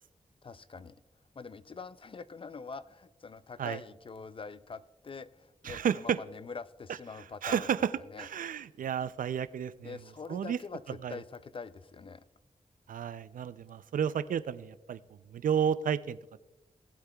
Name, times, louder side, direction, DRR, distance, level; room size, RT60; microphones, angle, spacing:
voice 1, 0.4-1.0 1.4-7.7 8.1-8.3 9.8-12.2, left 4 dB, 40° left, 15 dB, 0.4 m, -44 dB
voice 2, 5.6-6.2 6.9-7.9 8.2-10.0 10.3-10.6 10.9-11.2 12.9-15.0 15.3-16.2, right 8 dB, 85° right, 15 dB, 0.4 m, -32 dB
19.0 x 8.1 x 2.3 m, 1.1 s
wide cardioid pair, 70°, 14 cm